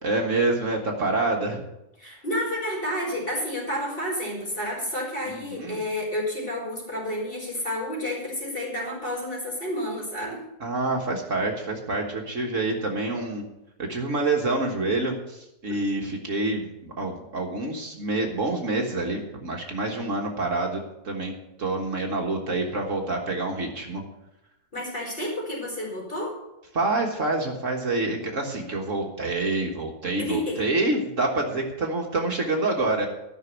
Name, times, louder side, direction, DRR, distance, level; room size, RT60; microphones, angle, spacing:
voice 1, 0.0-1.7 5.3-5.8 10.6-13.5 13.8-21.3 21.6-24.0 26.7-33.1, right 2 dB, 55° right, 1 dB, 1.8 m, -27 dB
voice 2, 2.0-10.4 24.7-26.4 30.2-30.6, left 1 dB, 35° left, -4 dB, 5.0 m, -30 dB
13.5 x 6.2 x 8.1 m, 0.91 s
omnidirectional pair, 1.7 m